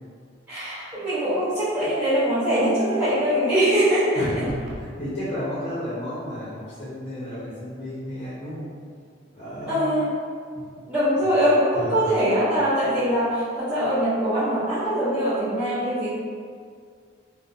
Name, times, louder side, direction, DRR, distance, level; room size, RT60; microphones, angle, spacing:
voice 1, 0.5-4.5 9.7-10.1 10.8-16.1, equal, 10° right, -16 dB, 0.9 m, -22 dB
voice 2, 4.2-8.7 9.3-9.8 10.5-10.6 11.7-12.1, equal, 40° left, -11 dB, 0.6 m, -32 dB
sound 1, 4.5-4.9, equal, 65° right, 0.3 m, -38 dB
2.4 x 2.0 x 2.6 m, 2.1 s
head